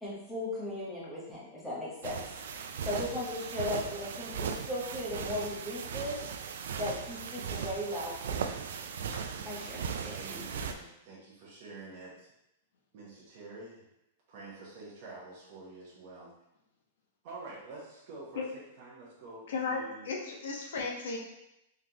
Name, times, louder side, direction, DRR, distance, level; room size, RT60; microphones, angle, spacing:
voice 1, 0.0-2.2 2.8-6.2 6.8-8.5 9.4-10.4, left 1 dB, 5° left, -7 dB, 0.9 m, -37 dB
sound 1, 2.0-10.7, right 6 dB, 70° right, 0.3 m, -38 dB
voice 2, 10.1-12.3 12.9-13.9 14.3-16.3 17.2-18.4 18.8-20.1, right 3 dB, 35° right, -7 dB, 1.0 m, -47 dB
voice 3, 19.5-21.2, left 4 dB, 70° left, 0 dB, 0.9 m, -35 dB
3.8 x 3.4 x 2.9 m, 0.86 s
supercardioid pair, 175°, 0 cm